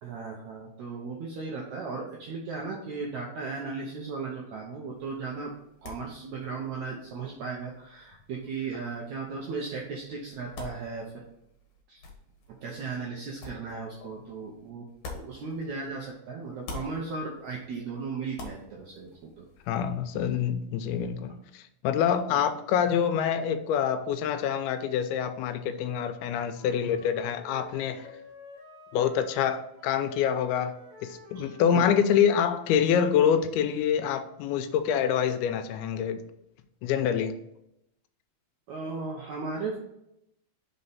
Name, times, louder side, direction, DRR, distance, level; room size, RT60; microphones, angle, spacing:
voice 1, 0.0-5.5 5.8-11.2 11.9-12.0 12.5-19.5 22.3-22.5 31.3-32.1 38.7-39.8, right 4 dB, 80° right, 1.7 m, -36 dB
sound 1, 4.9-16.1 16.4-19.8, left 3 dB, 60° left, 2.2 m, -48 dB
voice 2, 19.7-28.1 28.9-30.7 31.0-36.2 36.8-37.4, left 8 dB, 85° left, 2.5 m, -26 dB
Wind instrument woodwind instrument, 26.3-32.6, left 1 dB, 60° right, 1.5 m, -50 dB
5.4 x 4.2 x 5.4 m
omnidirectional pair, 4.3 m